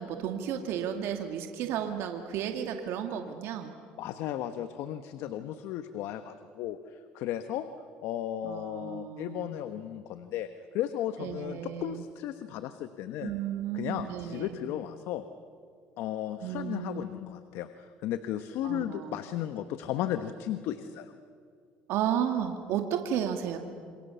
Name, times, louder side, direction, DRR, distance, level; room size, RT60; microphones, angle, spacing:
voice 1, 0.0-3.7 8.4-9.5 11.2-12.0 13.2-14.6 16.4-17.1 18.6-19.2 21.9-23.6, right 9 dB, 75° right, 5 dB, 2.1 m, -33 dB
voice 2, 4.0-7.7 8.0-13.3 13.7-15.2 16.0-21.1, left 11 dB, 75° left, 9 dB, 1.2 m, -35 dB
28.0 x 27.0 x 7.0 m, 2.2 s
supercardioid pair, 80°, 4 cm